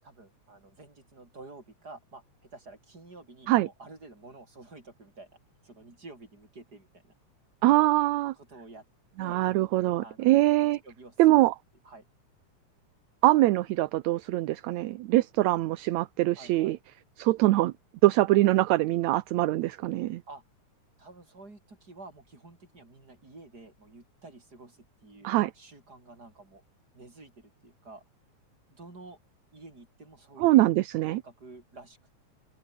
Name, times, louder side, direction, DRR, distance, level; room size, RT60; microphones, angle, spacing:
voice 1, 0.0-5.3 5.6-7.1 8.4-8.8 9.2-9.4 10.0-11.4 11.8-12.0 16.3-16.7 20.3-20.4 21.0-26.6 26.9-28.0 28.7-29.2 29.5-30.7 31.0-32.1, right 2 dB, 30° right, 6.5 m, -50 dB
voice 2, 7.6-8.3 9.2-10.8 11.2-11.5 13.2-16.8 17.2-17.7 18.0-20.2 25.2-25.5 30.4-31.2, right 17 dB, 75° right, 2.1 m, -23 dB
open air
omnidirectional pair, 3.3 m